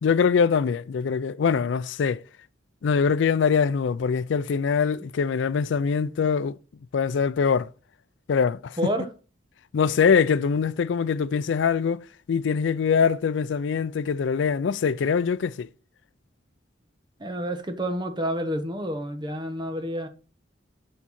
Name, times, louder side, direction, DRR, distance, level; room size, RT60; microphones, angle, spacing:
voice 1, 0.0-2.2 2.8-6.6 6.9-7.7 8.3-8.8 9.7-15.7, left 6 dB, 85° left, 0.4 m, -23 dB
voice 2, 8.8-9.1 17.2-20.1, equal, 25° right, 1.1 m, -29 dB
7.1 x 5.7 x 4.2 m
head